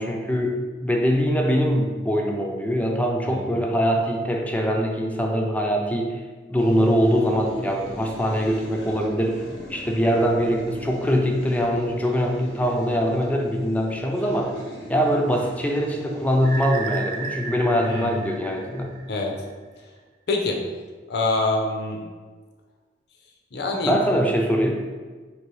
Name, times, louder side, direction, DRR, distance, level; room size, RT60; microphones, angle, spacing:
voice 1, 0.0-6.2 6.5-9.4 9.7-14.6 14.9-18.9 23.8-24.8, equal, 10° left, 1 dB, 0.5 m, -23 dB
voice 2, 3.3-3.6 17.8-18.3 19.1-19.3 20.3-20.6 21.1-22.0 23.5-23.9, left 2 dB, 65° left, 1 dB, 0.6 m, -25 dB
sound 1, 6.6-19.5, left 1 dB, 90° left, 1.0 m, -41 dB
sound 2, 16.4-19.3, right 4 dB, 50° right, 0.5 m, -34 dB
4.9 x 3.0 x 3.1 m, 1.4 s
head